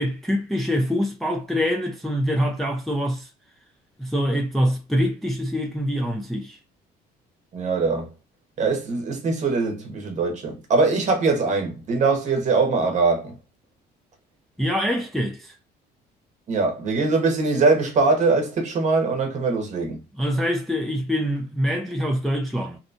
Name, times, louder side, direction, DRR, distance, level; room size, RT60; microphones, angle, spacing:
voice 1, 0.0-3.3 4.0-6.6 14.6-15.5 20.2-22.8, equal, ahead, 0.4 m, -24 dB
voice 2, 7.5-8.1 8.6-13.4 16.5-20.0, right 3 dB, 45° right, 0.9 m, -22 dB
2.7 x 2.2 x 2.5 m
cardioid pair, 110°, 17 cm